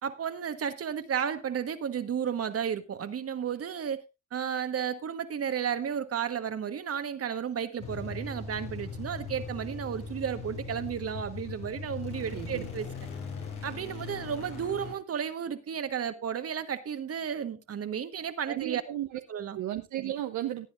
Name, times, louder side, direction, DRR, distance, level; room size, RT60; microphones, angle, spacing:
voice 1, 0.0-4.0 4.3-12.9 13.6-18.8 19.3-19.6, right 8 dB, 50° right, 9 dB, 1.4 m, -33 dB
sound 1, 7.8-14.9, left 4 dB, 85° left, 6.1 m, -39 dB
voice 2, 12.3-12.7 18.5-19.2 19.5-20.7, right 13 dB, 85° right, 6 dB, 0.9 m, -34 dB
18.5 x 9.7 x 2.5 m, 0.25 s
cardioid pair, 90°, 30 cm